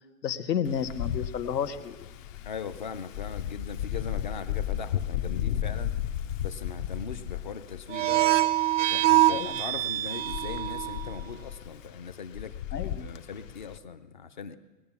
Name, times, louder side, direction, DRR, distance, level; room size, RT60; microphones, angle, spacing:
voice 1, 0.2-2.1 9.3-9.6 12.7-13.1, left 8 dB, 85° left, 10 dB, 1.4 m, -31 dB
Wind, 0.6-13.8, left 10 dB, 50° left, 0.9 m, -35 dB
voice 2, 2.4-6.0 6.4-8.3 8.8-12.6 12.8-14.6, left 6 dB, 30° left, 12 dB, 0.4 m, -40 dB
sound 1, 7.9-11.2, right 15 dB, 55° right, 0.5 m, -24 dB
19.5 x 10.5 x 7.1 m, 1.3 s
hypercardioid pair, 160°, 48 cm